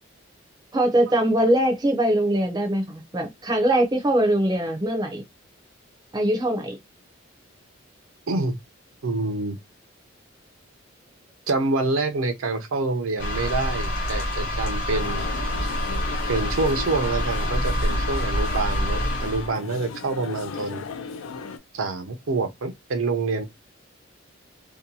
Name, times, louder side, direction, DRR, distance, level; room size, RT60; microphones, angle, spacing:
voice 1, 0.7-5.2 6.1-6.8, right 1 dB, 20° right, 0.5 m, -22 dB
voice 2, 8.3-8.6 9.0-9.6 11.5-15.3 15.6-15.7 16.3-20.8 21.7-23.4, right 3 dB, 80° right, 0.5 m, -26 dB
sound 1, 13.2-19.5, left 1 dB, 40° left, 1.0 m, -26 dB
sound 2, 14.9-21.6, left 4 dB, 75° left, 0.3 m, -36 dB
2.7 x 2.2 x 2.6 m
head